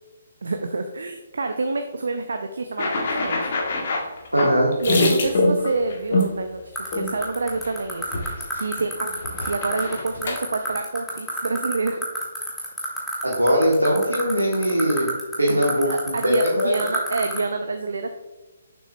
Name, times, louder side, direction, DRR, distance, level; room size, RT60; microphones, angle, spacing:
voice 1, 0.4-3.4 4.8-9.1 9.4-12.1 15.5-15.6 15.9-18.2, right 3 dB, 60° right, 6 dB, 0.5 m, -28 dB
sound 1, 2.8-6.3 6.9-7.1 7.5-7.7 8.0-8.8 9.1-10.4, left 2 dB, 45° left, 1.1 m, -24 dB
voice 2, 4.3-4.8 13.2-15.9 16.2-16.7, equal, 85° right, -3 dB, 1.1 m, -20 dB
sound 2, 6.8-17.4, left 1 dB, 5° left, 1.3 m, -30 dB
7.1 x 6.1 x 2.3 m, 1.1 s
figure-of-eight pair, 135°, 0 cm